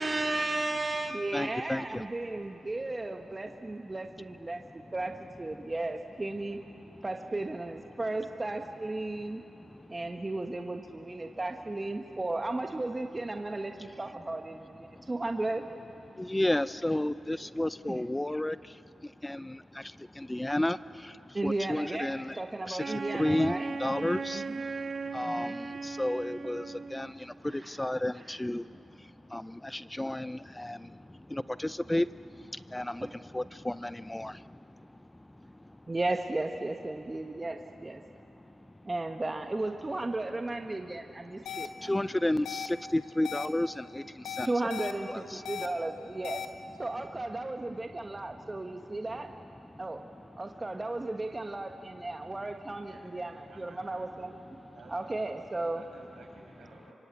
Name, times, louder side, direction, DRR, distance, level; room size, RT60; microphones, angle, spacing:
voice 1, 0.0-6.6 7.0-9.4 9.9-15.7 17.9-18.0 21.3-23.7 24.3-24.5 25.2-25.5 33.0-33.1 35.9-38.0 38.8-41.9 44.4-46.4 46.8-49.3 49.8-50.0 50.3-54.6 54.9-55.8, right 2 dB, 30° right, 5 dB, 1.4 m, -35 dB
voice 2, 1.3-2.1 3.9-4.0 5.5-5.7 6.8-7.0 9.2-10.0 11.2-11.4 14.8-15.1 16.1-22.4 22.7-35.9 38.0-38.9 41.2-44.5 45.1-45.4 47.9-49.1 49.6-50.5 54.6-54.7, left 1 dB, 15° left, 15 dB, 0.6 m, -34 dB
Wind instrument woodwind instrument, 22.8-27.2, right 4 dB, 60° right, 1.7 m, -37 dB
sound 1, 41.5-41.7 42.5-42.7 43.2-43.5 44.3-44.9 45.5-45.7 46.2-46.5, left 9 dB, 90° left, 1.3 m, -36 dB
voice 3, 52.8-53.1 53.5-54.1 54.7-55.0 55.7-56.9, right 3 dB, 75° right, 0 dB, 6.0 m, -54 dB
25.0 x 24.5 x 8.5 m, 2.9 s
supercardioid pair, 45°, 0 cm